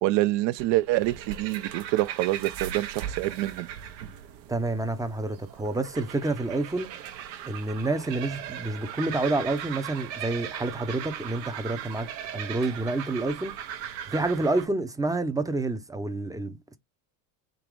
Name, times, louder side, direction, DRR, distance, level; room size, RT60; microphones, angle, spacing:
voice 1, 0.0-3.7, right 17 dB, 60° right, 0.5 m, -26 dB
sound 1, 0.6-14.7, right 10 dB, 85° right, 1.0 m, -38 dB
voice 2, 4.5-6.9 7.4-13.6 14.1-16.8, right 2 dB, 5° right, 0.5 m, -29 dB
3.8 x 2.9 x 4.8 m
supercardioid pair, 100°, 50 cm